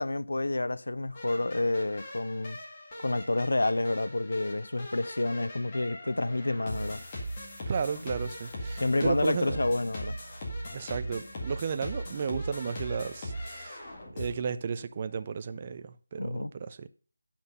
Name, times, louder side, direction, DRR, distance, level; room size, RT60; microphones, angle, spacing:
voice 1, 0.0-2.6 3.0-7.0 8.8-10.2 16.2-16.5, left 2 dB, 80° left, 0.4 m, -29 dB
sound 1, 1.1-14.3, equal, 20° left, 1.9 m, -39 dB
voice 2, 7.7-9.6 10.7-13.8 14.1-16.9, right 6 dB, 20° right, 0.4 m, -34 dB
9.6 x 5.8 x 5.3 m
figure-of-eight pair, 175°, 0 cm